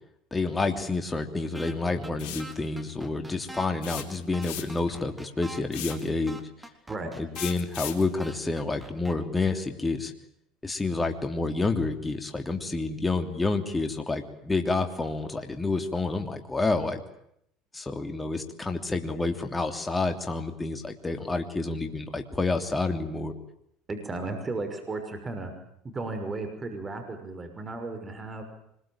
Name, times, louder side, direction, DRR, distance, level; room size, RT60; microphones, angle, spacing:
voice 1, 0.3-6.4 7.2-10.1 10.6-17.0 17.7-23.3, left 3 dB, 15° left, 5 dB, 3.2 m, -29 dB
sound 1, 1.5-1.7 2.0-2.1 2.4-3.7 4.0-4.1 4.3-5.6 5.9-6.0 6.3-7.5 7.8-7.9 8.2-9.1, right 1 dB, 5° right, 3.8 m, -42 dB
sound 2, 2.2-2.5 3.8-4.9 5.7-6.1 7.3-8.1, left 11 dB, 70° left, 4.1 m, -37 dB
voice 2, 23.9-25.5 25.8-28.4, right 3 dB, 25° right, 7 dB, 6.1 m, -34 dB
25.0 x 22.0 x 9.0 m, 0.74 s
hypercardioid pair, 80°, 0 cm